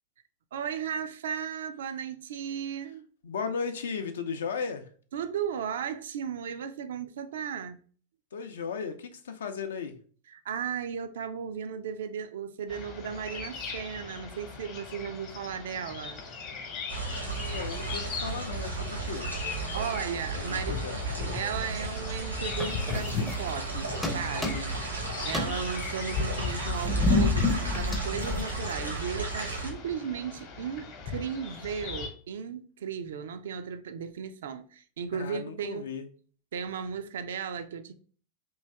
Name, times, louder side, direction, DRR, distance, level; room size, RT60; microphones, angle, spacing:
voice 1, 0.5-3.1 5.1-7.8 10.3-16.2 19.7-20.8 21.3-24.8 25.2-35.9 36.5-37.9, right 7 dB, 60° right, 0.3 m, -35 dB
voice 2, 3.2-4.9 8.3-10.0 17.2-19.3 20.4-21.0 35.1-36.1, left 6 dB, 65° left, 0.4 m, -36 dB
sound 1, 12.7-32.1, left 6 dB, 40° left, 0.9 m, -38 dB
sound 2, 16.9-29.7, right 3 dB, 85° right, 0.9 m, -35 dB
sound 3, 22.6-23.7 24.0-24.9 25.2-29.0, left 1 dB, 5° left, 0.5 m, -30 dB
3.0 x 2.8 x 3.3 m
figure-of-eight pair, 90°, 0 cm